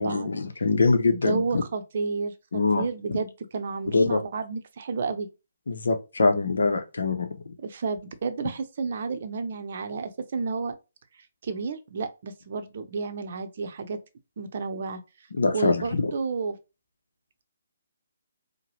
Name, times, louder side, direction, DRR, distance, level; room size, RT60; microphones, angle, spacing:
voice 1, 0.0-1.6 2.5-2.8 3.1-3.2 3.9-4.2 5.7-7.3 15.3-16.1, left 3 dB, 65° left, 0.7 m, -23 dB
voice 2, 1.1-5.3 7.6-10.7 11.4-14.0 14.4-15.0 15.5-16.6, right 4 dB, 45° right, 0.6 m, -31 dB
4.7 x 2.1 x 3.1 m
figure-of-eight pair, 140°, 0 cm